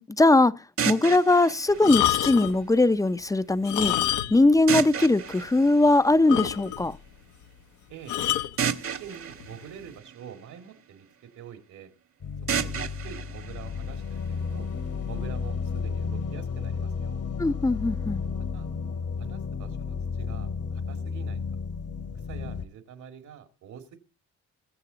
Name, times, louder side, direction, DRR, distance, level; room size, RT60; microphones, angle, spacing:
voice 1, 0.0-4.0 4.3-7.0 17.4-18.2, left 2 dB, 10° left, 0.5 m, -21 dB
sound 1, 0.8-2.8 4.7-6.6 8.6-10.8 12.5-14.5, right 7 dB, 50° right, 1.3 m, -33 dB
sound 2, 1.8-2.6 3.6-4.6 4.8-4.9 5.5-5.6 5.8-5.9 6.3-6.9 8.1-8.6 9.4-9.6, left 13 dB, 75° left, 0.8 m, -27 dB
voice 2, 8.9-11.9 12.5-14.7 15.1-17.2 18.5-18.7 19.2-21.4 22.3-24.0, right 8 dB, 75° right, 2.2 m, -45 dB
sound 3, 12.2-22.7, left 5 dB, 50° left, 1.2 m, -32 dB
22.0 x 7.4 x 3.9 m
cardioid pair, 90°, 30 cm